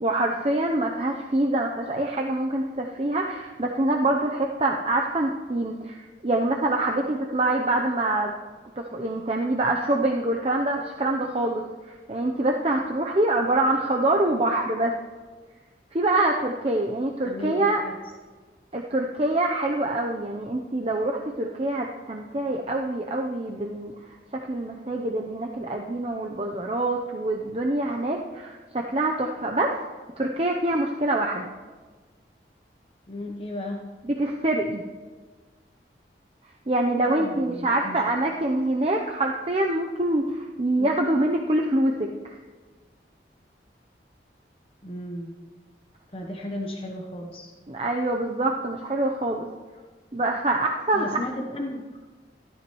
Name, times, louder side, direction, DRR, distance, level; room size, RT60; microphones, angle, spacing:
voice 1, 0.0-8.3 8.8-15.0 15.9-17.8 18.7-23.9 24.3-29.8 30.2-31.5 34.1-34.8 36.7-42.4 47.7-49.5 50.1-51.1, right 2 dB, 35° right, 1 dB, 0.7 m, -25 dB
voice 2, 17.3-18.0 33.1-33.9 37.0-38.0 40.8-40.9 44.8-45.4 46.1-47.5 50.9-51.8, left 1 dB, 30° left, 1 dB, 0.9 m, -35 dB
14.0 x 12.5 x 3.1 m, 1.4 s
head